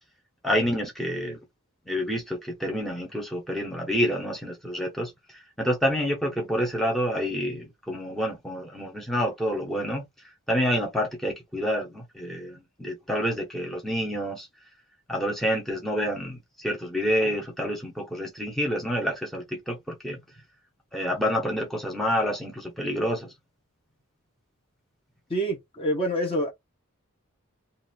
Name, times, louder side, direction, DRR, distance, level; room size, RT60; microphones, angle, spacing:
voice 1, 0.4-1.4 1.9-5.1 5.6-10.0 10.5-14.5 15.1-20.2 20.9-23.3, equal, ahead, 1.1 m, -28 dB
voice 2, 25.3-26.5, equal, 25° left, 1.1 m, -26 dB
2.7 x 2.7 x 4.2 m
head